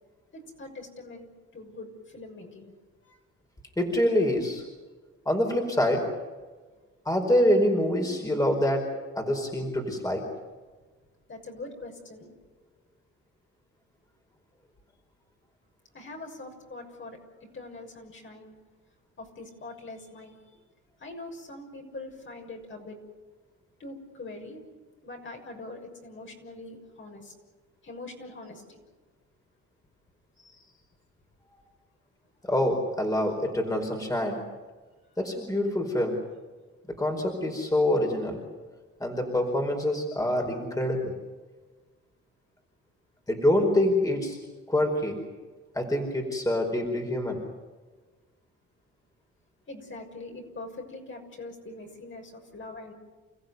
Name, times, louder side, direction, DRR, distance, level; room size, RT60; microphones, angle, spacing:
voice 1, 0.3-2.7 3.0-3.2 11.3-12.3 15.9-18.5 19.2-20.6 21.0-23.0 23.8-24.6 25.0-27.3 27.8-28.8 49.7-52.9, left 2 dB, 40° left, 2 dB, 6.5 m, -43 dB
voice 2, 3.8-4.6 5.2-6.0 7.0-8.9 9.1-10.3 32.4-34.4 35.2-36.2 36.9-38.4 39.0-41.2 43.3-44.4 44.7-45.2 45.7-47.4, left 1 dB, 10° left, 2 dB, 4.8 m, -26 dB
29.5 x 15.5 x 9.5 m, 1.4 s
cardioid pair, 90°, 30 cm